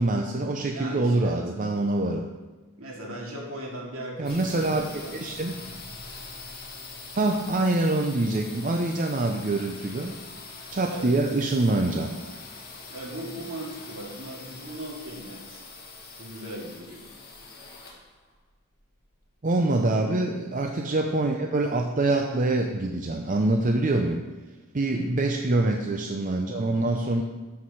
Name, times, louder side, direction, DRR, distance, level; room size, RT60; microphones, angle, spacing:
voice 1, 0.0-2.3 4.2-4.8 5.2-5.5 7.1-10.1 10.7-12.1 19.4-24.2 24.7-27.2, right 2 dB, 35° right, 3 dB, 0.6 m, -25 dB
voice 2, 0.7-1.4 2.8-5.2 10.9-11.1 12.9-15.6 16.2-17.0 24.9-25.3, right 1 dB, 70° right, -2 dB, 2.4 m, -38 dB
sound 1, 4.2-19.9, left 3 dB, 45° left, 1.8 m, -43 dB
12.5 x 4.8 x 5.6 m, 1.3 s
head